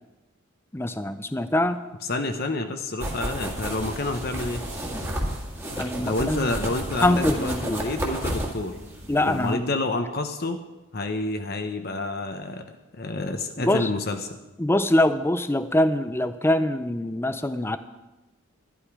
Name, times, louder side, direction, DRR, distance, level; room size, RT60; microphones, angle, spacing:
voice 1, 0.7-1.8 5.8-6.5 7.0-7.8 9.1-9.6 13.7-13.9 14.6-17.8, left 1 dB, 10° left, 11 dB, 0.5 m, -23 dB
voice 2, 2.0-4.7 5.7-8.8 9.2-10.6 10.9-12.6 13.0-14.4, left 2 dB, 45° left, 6 dB, 0.8 m, -29 dB
sound 1, 3.0-9.5, right 1 dB, 10° right, 1.8 m, -32 dB
12.0 x 12.0 x 4.8 m, 1.1 s
head